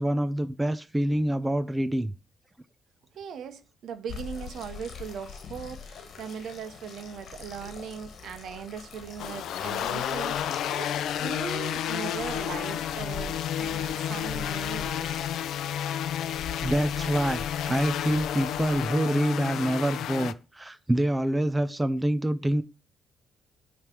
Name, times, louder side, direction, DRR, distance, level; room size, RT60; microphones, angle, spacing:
voice 1, 0.0-2.1 16.6-22.6, right 1 dB, 10° right, 0.5 m, -26 dB
voice 2, 3.1-15.2, right 7 dB, 70° right, 1.1 m, -39 dB
sound 1, 4.1-19.0, left 5 dB, 60° left, 1.4 m, -43 dB
sound 2, 9.2-20.3, left 10 dB, 75° left, 0.5 m, -31 dB
9.0 x 3.3 x 6.0 m
cardioid pair, 90°, 0 cm